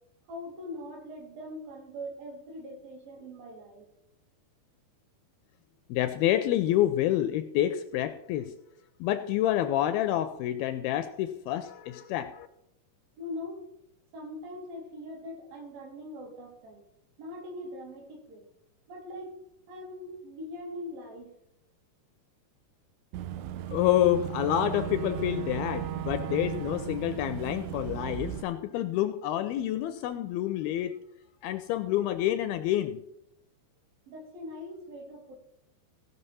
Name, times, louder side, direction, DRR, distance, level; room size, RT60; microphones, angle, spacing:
voice 1, 0.3-3.9 13.2-13.7 14.1-16.8 17.2-18.5 18.9-19.4 19.7-21.3 34.1-35.4, left 1 dB, 60° right, 1 dB, 3.9 m, -41 dB
voice 2, 5.9-8.6 9.0-12.5 23.7-31.0 31.4-33.0, left 12 dB, 80° left, 10 dB, 2.2 m, -28 dB
Boat Water vehicle / Engine, 23.1-28.4, right 11 dB, 90° right, 2.9 m, -36 dB
16.5 x 5.8 x 5.5 m, 0.78 s
omnidirectional pair, 4.7 m